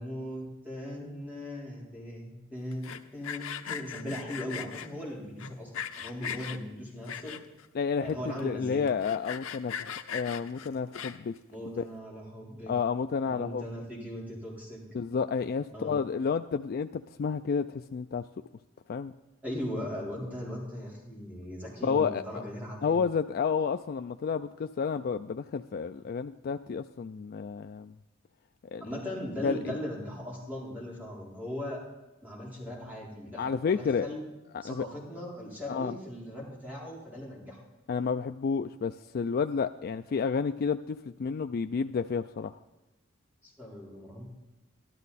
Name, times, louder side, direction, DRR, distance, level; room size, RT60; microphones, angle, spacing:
voice 1, 0.0-7.4 8.0-8.8 11.5-12.7 13.2-14.8 15.7-15.9 19.4-23.0 28.8-31.8 32.2-34.2 34.6-37.6 43.4-44.2, left 1 dB, 10° right, -5 dB, 3.9 m, -39 dB
Sawing, 2.7-4.9 5.4-6.6 7.1-7.7 8.1-8.2 8.4-8.5 8.9-11.4, left 8 dB, 85° left, 0.8 m, -38 dB
voice 2, 7.7-8.2 8.4-11.3 11.8-11.9 12.7-13.6 14.9-18.2 18.9-19.1 21.8-22.4 22.8-27.9 28.7-28.8 29.4-29.7 33.4-34.1 34.6-34.8 35.7-35.9 37.9-42.6, left 5 dB, 50° left, 8 dB, 0.3 m, -30 dB
13.0 x 12.5 x 4.2 m, 1.0 s
head